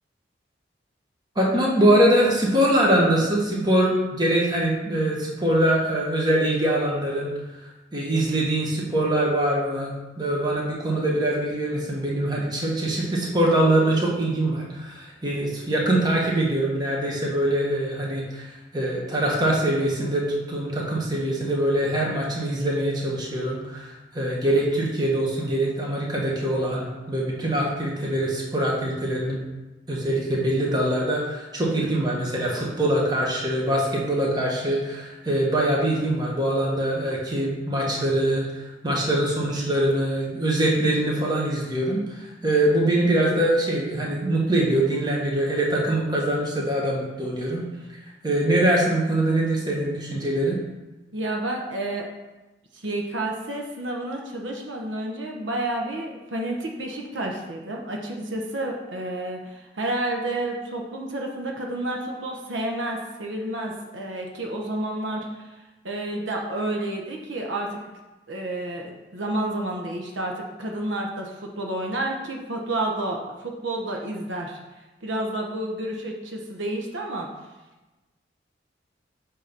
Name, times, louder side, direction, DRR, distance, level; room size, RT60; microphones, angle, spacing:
voice 1, 1.3-29.4 29.9-47.6 47.9-48.0 48.2-50.6, right 1 dB, 20° right, -3 dB, 1.2 m, -23 dB
voice 2, 51.1-52.1 52.7-65.6 65.8-67.8 68.3-74.6 75.0-77.3, right 1 dB, 80° right, 0 dB, 0.8 m, -30 dB
7.5 x 2.9 x 5.2 m, 1.1 s
head